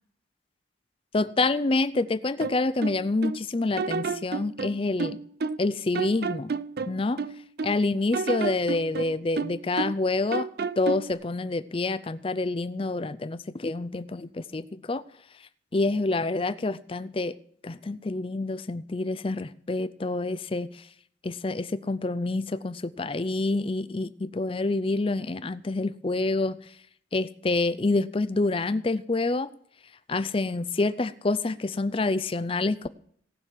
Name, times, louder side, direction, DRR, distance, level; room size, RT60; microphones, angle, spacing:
voice 1, 1.1-5.2 5.6-6.5 6.9-7.2 7.6-10.5 10.8-15.0 15.7-17.3 17.6-20.7 21.2-26.6 27.1-29.5 30.1-32.9, left 2 dB, 30° left, 0.5 m, -27 dB
sound 1, 2.4-3.4 3.8-5.7 5.9-7.8 8.1-10.0 10.3-11.1, right 4 dB, 55° right, 0.5 m, -31 dB
18.0 x 6.3 x 7.4 m
head